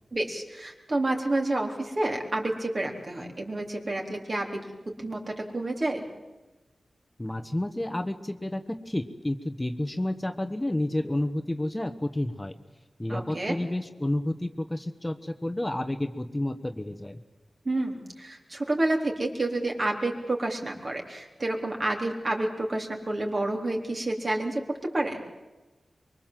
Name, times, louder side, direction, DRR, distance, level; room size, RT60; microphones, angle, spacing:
voice 1, 0.1-6.1 13.1-13.5 17.7-24.6 24.9-25.2, right 2 dB, 45° right, 1 dB, 3.9 m, -29 dB
voice 2, 7.2-12.6 13.0-17.2, left 1 dB, 15° left, 8 dB, 1.2 m, -30 dB
24.0 x 23.0 x 7.6 m, 1.1 s
wide cardioid pair, 75°, 0 cm